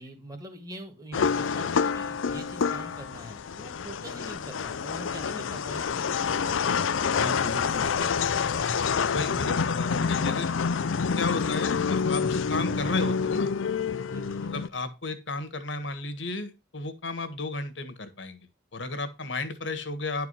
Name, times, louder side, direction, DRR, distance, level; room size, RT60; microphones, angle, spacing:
voice 1, 0.0-6.8 7.5-8.8 14.1-14.5, right 1 dB, 20° right, 3 dB, 1.8 m, -44 dB
sound 1, 1.1-14.7, left 6 dB, 85° left, 0.5 m, -27 dB
voice 2, 7.1-7.8 8.7-10.5 11.0-13.5 14.5-18.4 18.7-20.3, left 3 dB, 70° left, 10 dB, 1.6 m, -34 dB
10.5 x 4.8 x 5.5 m, 0.27 s
head